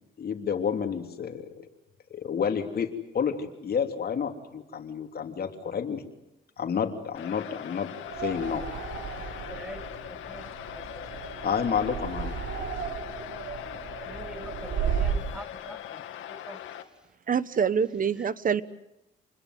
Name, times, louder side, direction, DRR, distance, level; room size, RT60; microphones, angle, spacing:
voice 1, 0.2-1.5 2.1-6.0 6.6-7.9 8.2-8.7 11.4-12.4, left 7 dB, 50° left, 5 dB, 3.2 m, -30 dB
sound 1, 7.1-16.8, left 11 dB, 85° left, 2.2 m, -41 dB
sound 2, 8.1-15.4, right 6 dB, 65° right, 3.6 m, -34 dB
voice 2, 9.5-9.8 10.1-10.5 11.0-11.1 14.1-14.7 15.0-15.8 16.3-16.6, equal, 5° right, 14 dB, 1.2 m, -44 dB
voice 3, 17.3-18.6, right 7 dB, 45° right, 16 dB, 1.2 m, -25 dB
28.5 x 21.5 x 7.8 m, 0.87 s
cardioid pair, 90°, 20 cm